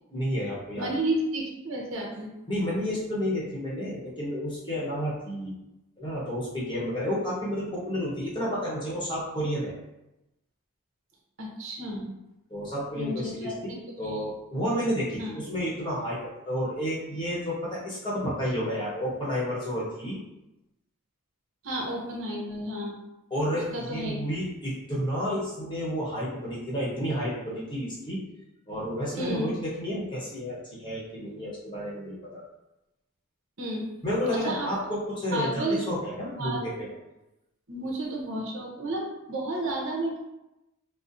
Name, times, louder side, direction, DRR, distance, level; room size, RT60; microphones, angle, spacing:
voice 1, 0.1-0.9 2.5-5.5 6.0-9.7 12.5-20.2 23.3-28.2 28.7-32.4 34.0-36.9, equal, 20° left, -7 dB, 0.9 m, -31 dB
voice 2, 0.8-2.3 11.4-12.1 13.0-13.8 14.0-14.2 15.2-15.3 21.6-23.0 23.7-24.2 29.2-29.5 33.6-33.9 34.4-34.7 35.3-35.8 36.3-36.7 37.7-40.2, right 1 dB, 65° right, -1 dB, 0.8 m, -31 dB
4.0 x 2.0 x 2.6 m, 0.94 s
head